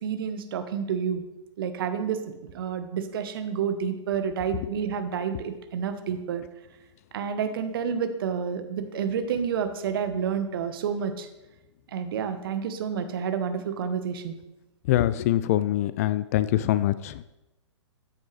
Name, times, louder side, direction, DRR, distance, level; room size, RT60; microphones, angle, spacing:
voice 1, 0.0-1.2 1.6-6.4 7.1-11.3 11.9-14.3, right 7 dB, 45° right, 9 dB, 1.1 m, -29 dB
voice 2, 14.9-17.2, left 13 dB, 30° left, 15 dB, 0.3 m, -24 dB
13.0 x 9.4 x 3.3 m, 0.97 s
figure-of-eight pair, 115°, 16 cm